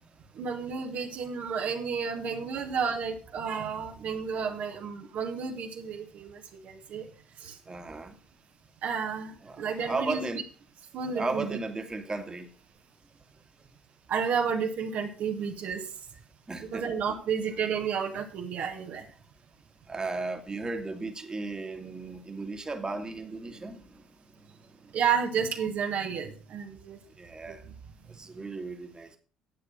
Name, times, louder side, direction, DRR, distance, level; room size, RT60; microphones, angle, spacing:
voice 1, 0.3-7.1 7.4-7.6 8.8-10.2 10.9-11.6 14.1-15.9 16.6-19.0 24.9-27.0 27.5-27.6, right 6 dB, 55° right, 2 dB, 1.8 m, -31 dB
voice 2, 7.7-8.2 9.4-10.4 11.1-12.5 16.5-16.9 19.9-24.0 24.8-24.9 27.2-27.6 28.2-29.2, right 3 dB, 25° right, 6 dB, 2.0 m, -35 dB
10.5 x 8.2 x 6.4 m, 0.41 s
figure-of-eight pair, 55°, 3 cm